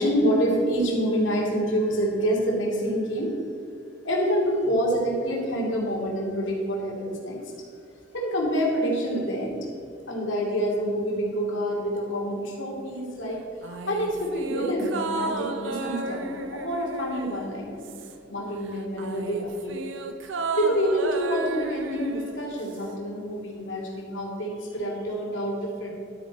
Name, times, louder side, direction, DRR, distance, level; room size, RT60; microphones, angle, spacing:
voice 1, 0.0-3.4 4.0-7.4 8.1-9.7 10.1-13.4 13.7-17.9 18.3-19.8 20.6-25.9, equal, 70° left, -2 dB, 2.6 m, -27 dB
sound 1, 13.6-18.4 18.7-23.0 23.3-23.4, right 3 dB, 70° right, 0.8 m, -34 dB
12.0 x 8.7 x 4.2 m, 2.6 s
head